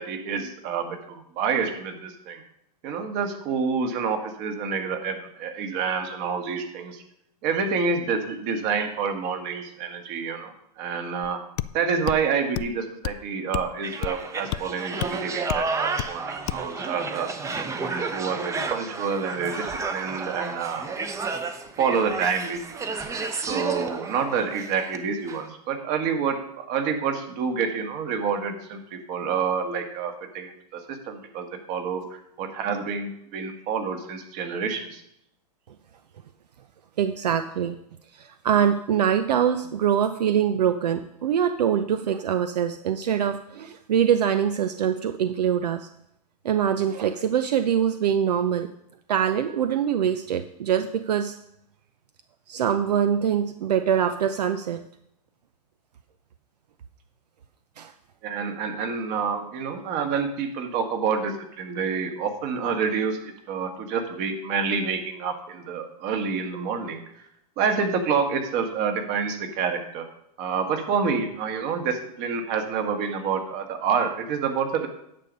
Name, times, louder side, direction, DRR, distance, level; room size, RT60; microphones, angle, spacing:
voice 1, 0.0-2.4 2.8-7.0 7.4-11.4 11.7-17.3 17.7-20.8 21.8-22.9 23.5-35.0 58.2-67.0 67.6-70.0 70.4-74.9, right 6 dB, 40° right, 5 dB, 1.7 m, -28 dB
sound 1, 11.2-11.3 11.6-11.7 12.1-12.2 12.6-12.8 13.0-13.2 13.5-13.7 14.0-14.2 14.5-14.6 15.0-15.1 15.5-15.7 16.0-16.1 16.5-16.7, left 16 dB, 40° left, 0.4 m, -30 dB
sound 2, 13.8-25.0 25.3-25.4, right 4 dB, 15° right, 0.8 m, -32 dB
voice 2, 37.0-37.8 38.1-45.9 46.4-48.7 49.1-51.4 52.5-54.8 57.8-57.9, right 9 dB, 75° right, 9 dB, 0.7 m, -24 dB
9.8 x 6.8 x 5.3 m, 0.77 s
hypercardioid pair, 120°, 21 cm